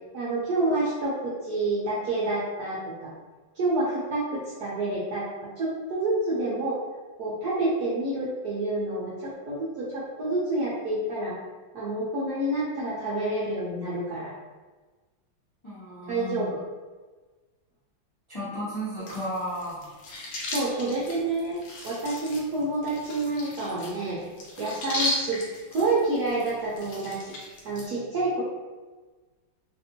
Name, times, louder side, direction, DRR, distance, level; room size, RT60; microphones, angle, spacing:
voice 1, 0.1-3.1 3.5-5.2 5.6-6.8 7.2-11.3 11.7-14.3 16.1-16.6 20.5-21.6 21.8-24.2 24.6-25.4 25.7-28.4, right 2 dB, 70° right, -8 dB, 0.9 m, -28 dB
voice 2, 15.6-16.6 18.3-19.8, equal, 25° left, -12 dB, 0.7 m, -34 dB
sound 1, 19.0-27.9, left 1 dB, 70° left, 1.4 m, -36 dB
3.4 x 2.5 x 2.7 m, 1.3 s
omnidirectional pair, 2.3 m